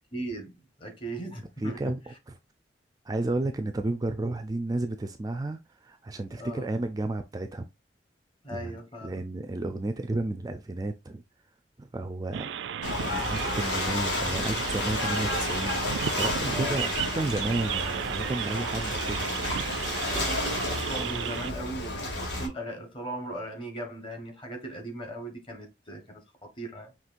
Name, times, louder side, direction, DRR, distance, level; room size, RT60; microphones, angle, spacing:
voice 1, 0.1-0.5 0.8-1.9 6.4-6.7 8.4-9.3 16.4-16.9 19.9-26.9, right 1 dB, 30° left, 1.3 m, -38 dB
voice 2, 1.6-2.4 3.0-7.7 8.5-8.7 9.0-11.2 11.8-12.5 13.1-16.9 17.2-19.3, right 2 dB, 20° right, 0.4 m, -32 dB
sound 1, 12.3-21.5, right 9 dB, 85° right, 0.4 m, -34 dB
Ocean / Boat Water vehicle, 12.8-22.5, left 2 dB, 70° left, 1.8 m, -31 dB
5.9 x 3.0 x 2.5 m
head